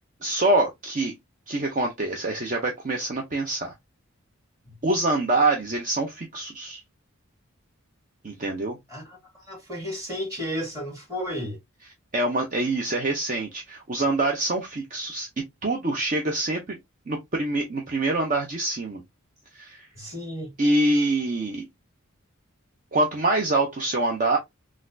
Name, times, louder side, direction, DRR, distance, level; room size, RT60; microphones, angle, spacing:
voice 1, 0.2-1.1 1.5-3.7 4.8-6.8 8.2-8.8 12.1-15.3 15.6-16.8 17.1-19.0 19.5-19.9 20.6-21.7 22.9-24.4, right 2 dB, 40° right, 0.6 m, -25 dB
voice 2, 8.9-11.6 19.9-20.5, equal, 15° right, 1.8 m, -33 dB
3.9 x 2.4 x 2.5 m
head